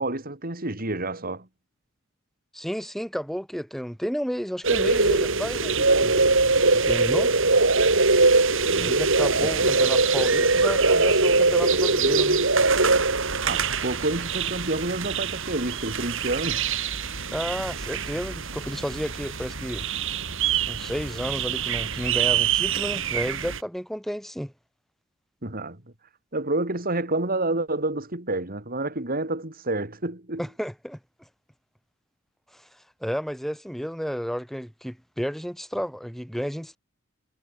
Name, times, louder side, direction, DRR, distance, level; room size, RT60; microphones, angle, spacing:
voice 1, 0.0-1.5 8.7-8.9 9.4-9.7 13.4-16.6 25.4-25.8 26.3-30.4, right 2 dB, 45° right, 3.9 m, -29 dB
voice 2, 2.5-7.3 8.8-12.4 17.3-19.9 20.7-24.5 30.4-31.0 32.5-32.6 33.0-36.8, equal, ahead, 6.2 m, -32 dB
sound 1, 4.6-23.6, right 4 dB, 70° right, 5.0 m, -23 dB
head